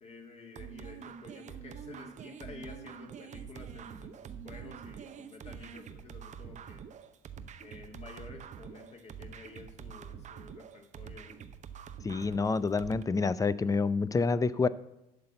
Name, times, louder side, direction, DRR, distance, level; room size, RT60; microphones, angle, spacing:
voice 1, 0.0-6.9 7.6-11.4, left 3 dB, 35° left, 2 dB, 2.3 m, -50 dB
sound 1, 0.5-13.0, right 8 dB, 40° right, 0.8 m, -46 dB
voice 2, 12.0-14.7, left 4 dB, 20° left, 17 dB, 0.5 m, -28 dB
11.0 x 4.0 x 7.7 m, 0.90 s
hypercardioid pair, 75°, 18 cm